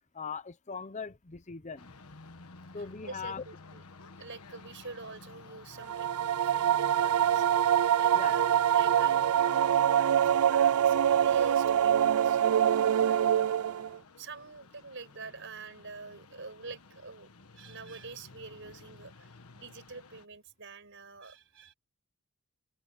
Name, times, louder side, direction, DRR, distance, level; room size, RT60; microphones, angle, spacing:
voice 1, 0.1-1.9 2.7-3.4 8.1-8.4, left 5 dB, 30° left, 0.7 m, -40 dB
sound 1, 1.8-20.3, left 3 dB, 80° left, 1.4 m, -52 dB
voice 2, 3.0-3.8 4.2-7.5 7.9-12.4 13.0-13.6 14.2-21.7, right 4 dB, 55° right, 6.1 m, -46 dB
sound 2, 5.8-14.0, right 10 dB, 85° right, 0.4 m, -25 dB
open air
head